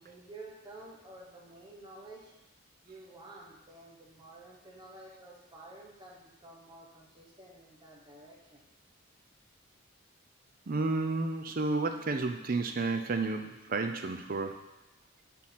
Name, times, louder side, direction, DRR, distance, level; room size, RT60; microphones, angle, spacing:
voice 1, 0.0-2.3 2.8-8.6, right 2 dB, 20° right, -3 dB, 1.1 m, -51 dB
voice 2, 10.7-14.6, right 3 dB, 45° right, 6 dB, 0.5 m, -31 dB
6.3 x 3.7 x 5.8 m, 0.98 s
head